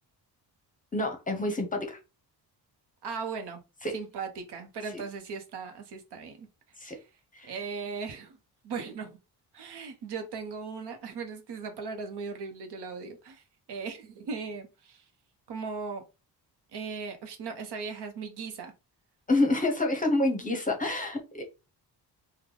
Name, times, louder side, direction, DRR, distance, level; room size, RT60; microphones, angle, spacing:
voice 1, 0.9-2.0 3.8-3.9 4.9-5.0 6.8-7.0 7.3-7.5 19.3-21.4, left 2 dB, 20° left, 0.7 m, -28 dB
voice 2, 3.0-3.6 3.9-6.5 6.9-7.0 7.4-8.4 8.6-9.2 9.5-13.4 13.7-15.0 15.5-16.0 16.7-18.7, right 5 dB, 75° right, 0.9 m, -38 dB
3.3 x 2.2 x 3.7 m
cardioid pair, 135°, 41 cm